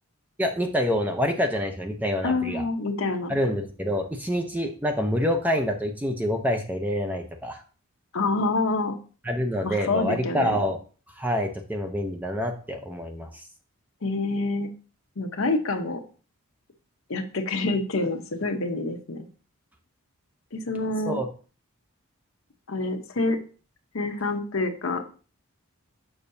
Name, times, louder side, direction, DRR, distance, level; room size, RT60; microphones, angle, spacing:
voice 1, 0.4-2.6 3.3-7.6 9.2-10.8 11.2-13.3 21.1-21.3, equal, 5° right, 4 dB, 0.6 m, -26 dB
voice 2, 2.2-3.3 8.1-8.9 9.6-10.6 14.0-14.7 15.2-16.0 17.1-19.3 20.5-21.2 22.7-23.4 23.9-25.0, left 3 dB, 65° left, 5 dB, 0.8 m, -27 dB
6.9 x 5.5 x 2.7 m, 0.38 s
head